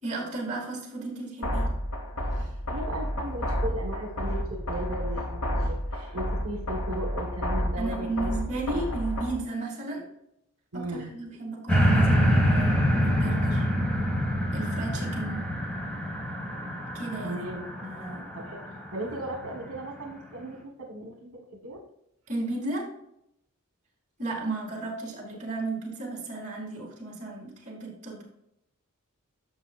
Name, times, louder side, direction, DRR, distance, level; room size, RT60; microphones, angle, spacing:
voice 1, 0.0-1.7 2.3-2.5 7.8-10.0 10.7-13.7 14.5-15.5 16.9-17.4 17.8-18.2 22.3-22.9 24.2-28.2, right 2 dB, 35° right, -3 dB, 3.1 m, -34 dB
sound 1, 1.4-9.4, equal, 80° left, 1.3 m, -31 dB
voice 2, 2.7-8.3 8.7-8.8 10.7-11.1 17.2-17.6 18.3-18.6 18.9-21.8, right 1 dB, 80° right, 2 dB, 1.3 m, -36 dB
sound 2, 11.7-19.1 19.6-19.7, equal, 5° left, 1.6 m, -25 dB
11.0 x 7.0 x 2.5 m, 0.78 s
head